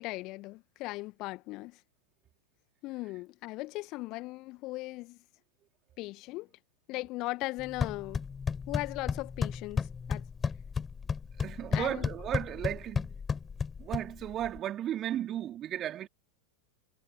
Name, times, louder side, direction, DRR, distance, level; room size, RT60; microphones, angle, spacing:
voice 1, 0.0-1.8 2.8-5.2 6.0-6.5 6.9-8.2 8.7-10.2 11.7-12.1, left 21 dB, 40° left, 1.9 m, -38 dB
sound 1, 7.6-14.6, left 6 dB, 15° left, 4.7 m, -34 dB
voice 2, 11.4-13.2 13.8-16.1, right 11 dB, 30° right, 4.4 m, -35 dB
figure-of-eight pair, 90°, 0 cm